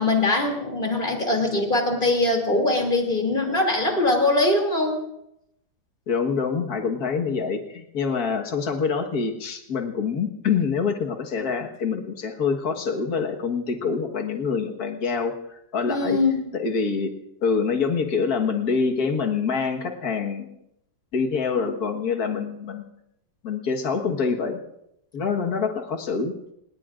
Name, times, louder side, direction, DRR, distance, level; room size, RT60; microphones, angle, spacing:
voice 1, 0.0-5.0 15.9-16.4, left 2 dB, 30° left, 2 dB, 3.0 m, -22 dB
voice 2, 6.1-16.2 16.5-17.1 17.4-20.5 21.1-22.8 23.4-24.6 25.1-26.3, left 5 dB, 60° left, 2 dB, 1.9 m, -26 dB
27.5 x 20.5 x 2.5 m, 0.81 s
omnidirectional pair, 1.8 m